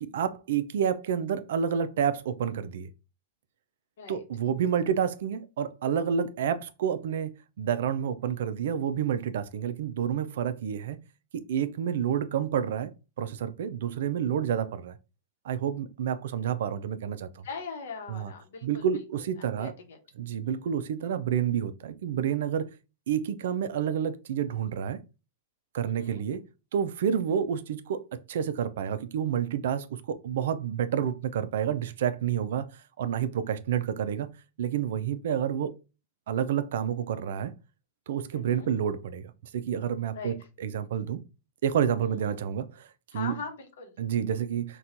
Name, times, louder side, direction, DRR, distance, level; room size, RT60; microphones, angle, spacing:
voice 1, 0.0-2.9 4.1-11.0 11.3-12.9 13.2-15.0 15.4-17.3 18.1-18.3 18.6-19.7 20.2-22.7 23.1-25.0 25.7-26.4 26.7-32.7 33.0-34.3 34.6-35.7 36.3-37.5 38.1-41.2 41.6-42.9 43.1-43.3 44.0-44.8, right 8 dB, 75° right, 0.3 m, -29 dB
voice 2, 17.4-19.0 19.4-20.0 20.4-20.6 25.9-26.2 27.2-27.4 38.3-38.7 40.1-40.5 42.0-42.4 43.1-43.9, left 5 dB, 75° left, 0.9 m, -41 dB
4.2 x 2.2 x 2.5 m
hypercardioid pair, 130°, 0 cm